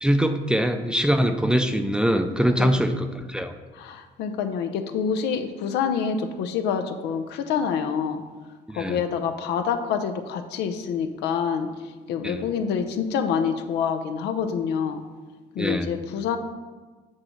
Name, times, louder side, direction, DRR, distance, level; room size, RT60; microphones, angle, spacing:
voice 1, 0.0-3.5 8.7-9.0 12.2-12.4 15.6-15.9, equal, 5° right, 7 dB, 0.4 m, -23 dB
voice 2, 2.5-2.9 3.7-8.2 8.7-11.7 12.1-15.0 15.5-16.4, left 7 dB, 85° left, 8 dB, 0.6 m, -27 dB
7.5 x 3.2 x 6.2 m, 1.4 s
cardioid pair, 115°, 17 cm